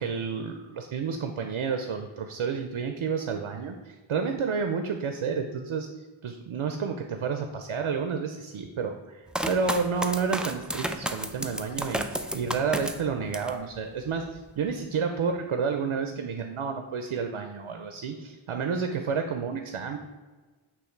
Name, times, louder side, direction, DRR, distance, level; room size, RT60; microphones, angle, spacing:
voice 1, 0.0-5.9 6.2-20.0, right 5 dB, 85° right, 6 dB, 0.6 m, -30 dB
sound 1, 9.3-13.6 14.1-14.7, right 1 dB, ahead, 0.4 m, -32 dB
8.4 x 3.1 x 4.5 m, 1.3 s
wide cardioid pair, 60°, 48 cm